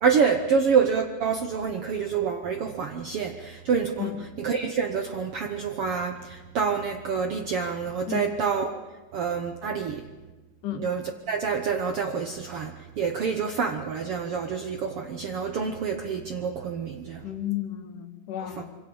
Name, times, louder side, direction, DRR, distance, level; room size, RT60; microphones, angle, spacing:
voice 1, 0.0-4.1 4.4-8.7 9.1-10.1 10.7-17.2 18.4-18.6, right 6 dB, 60° right, 5 dB, 1.7 m, -27 dB
voice 2, 17.2-18.8, left 12 dB, 80° left, 9 dB, 2.8 m, -32 dB
26.5 x 24.0 x 7.1 m, 1.2 s
omnidirectional pair, 3.6 m